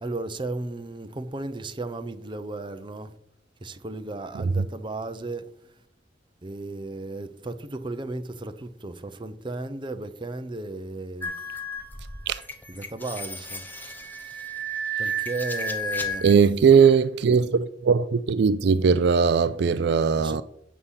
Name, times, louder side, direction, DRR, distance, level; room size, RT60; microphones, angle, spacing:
voice 1, 0.0-3.1 3.6-5.4 6.4-11.3 12.7-13.7 13.9-14.5 15.0-16.5 20.2-20.4, right 2 dB, 25° right, 0.7 m, -35 dB
sound 1, 11.2-16.3, right 1 dB, 10° left, 1.1 m, -32 dB
voice 2, 16.2-20.4, right 6 dB, 65° right, 0.4 m, -19 dB
8.2 x 6.6 x 5.6 m
head